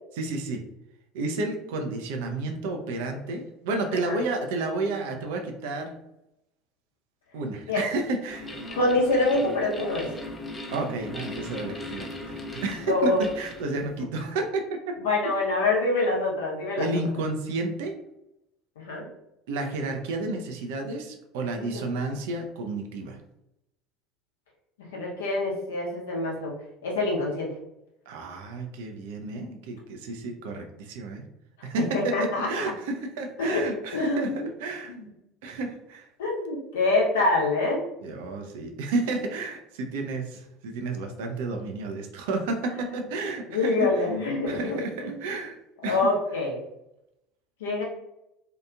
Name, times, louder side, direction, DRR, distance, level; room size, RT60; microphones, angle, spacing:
voice 1, 0.2-0.6 1.1-5.9 7.3-8.6 10.7-14.6 16.8-17.9 19.5-23.2 28.1-31.2 31.6-34.3 34.6-34.9 35.4-36.1 38.0-44.0 44.5-45.6 45.8-46.0, right 2 dB, 60° right, 4 dB, 0.4 m, -31 dB
sound 1, 8.3-14.0, left 2 dB, 20° left, 0.5 m, -38 dB
voice 2, 8.8-10.1 12.9-13.3 15.0-16.9 18.8-19.1 21.6-21.8 24.8-26.5 26.8-27.5 31.6-32.5 33.4-33.6 33.9-34.5 34.9-35.1 36.2-37.8 42.7-42.9 43.5-45.2 45.8-46.6 47.6-47.8, left 2 dB, 70° left, -3 dB, 0.8 m, -26 dB
2.8 x 2.4 x 2.3 m, 0.85 s
figure-of-eight pair, 65°, 0 cm